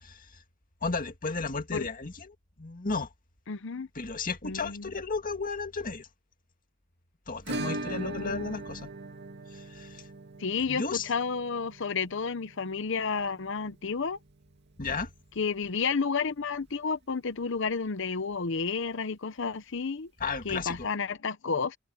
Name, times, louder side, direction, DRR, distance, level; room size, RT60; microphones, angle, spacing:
voice 1, 0.8-3.1 4.0-6.1 7.3-8.9 9.5-10.0 10.7-11.1 14.8-15.1 20.2-20.9, left 4 dB, 45° left, 2.1 m, -34 dB
voice 2, 3.5-3.9 4.4-4.9 7.9-8.6 10.4-14.2 15.4-20.1 20.4-21.8, left 5 dB, 65° left, 0.8 m, -31 dB
Acoustic guitar / Strum, 7.5-16.1 16.3-16.4 16.7-16.8 17.2-17.3 19.3-19.4 20.5-20.6, right 2 dB, 55° right, 2.2 m, -41 dB
head